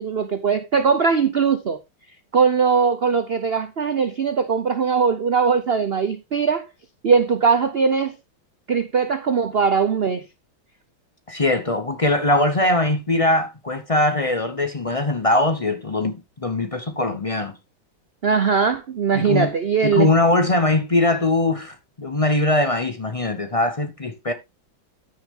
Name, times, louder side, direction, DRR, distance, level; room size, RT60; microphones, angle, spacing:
voice 1, 0.0-1.8 2.3-6.7 7.0-8.2 8.7-10.2 18.2-20.1, right 5 dB, 90° right, 0.5 m, -20 dB
voice 2, 11.3-17.6 19.1-19.5 19.8-24.3, left 2 dB, 55° left, 0.3 m, -21 dB
13.5 x 6.2 x 3.6 m
omnidirectional pair, 2.2 m